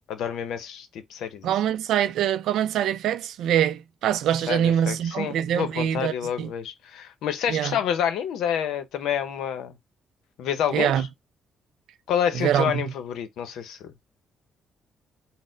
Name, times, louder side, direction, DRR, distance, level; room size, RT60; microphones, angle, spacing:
voice 1, 0.1-1.5 4.5-9.7 10.4-11.1 12.1-13.9, left 9 dB, 85° left, 0.7 m, -28 dB
voice 2, 1.4-6.5 7.5-7.8 10.7-11.1 12.3-12.8, right 10 dB, 85° right, 0.4 m, -24 dB
4.2 x 2.0 x 3.8 m
cardioid pair, 90°, 0 cm